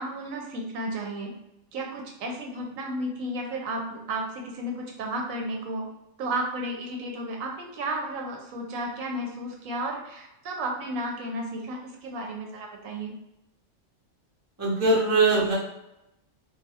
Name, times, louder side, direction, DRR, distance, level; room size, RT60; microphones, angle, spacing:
voice 1, 0.0-1.3 1.7-5.9 6.2-13.1, right 1 dB, 85° right, 1 dB, 1.0 m, -33 dB
voice 2, 14.6-15.5, right 2 dB, 20° right, -5 dB, 0.5 m, -21 dB
2.4 x 2.3 x 2.7 m, 0.89 s
omnidirectional pair, 1.4 m